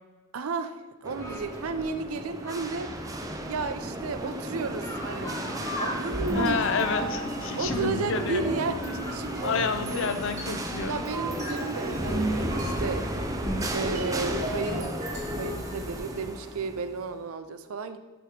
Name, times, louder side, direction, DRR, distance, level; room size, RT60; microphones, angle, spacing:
voice 1, 0.3-2.9 3.4-5.3 5.8-6.6 7.6-10.1 10.9-13.1 13.7-15.0 15.4-18.0, right 4 dB, 75° right, 10 dB, 0.5 m, -33 dB
sound 1, 1.0-17.1, right 1 dB, 15° right, 0.4 m, -35 dB
sound 2, 1.2-16.3, left 1 dB, 15° left, 0.8 m, -43 dB
sound 3, 6.1-16.4, equal, 35° right, 1.9 m, -34 dB
voice 2, 6.3-8.5 9.4-11.0, left 5 dB, 60° left, 8 dB, 0.5 m, -29 dB
7.9 x 3.0 x 5.1 m, 1.2 s
head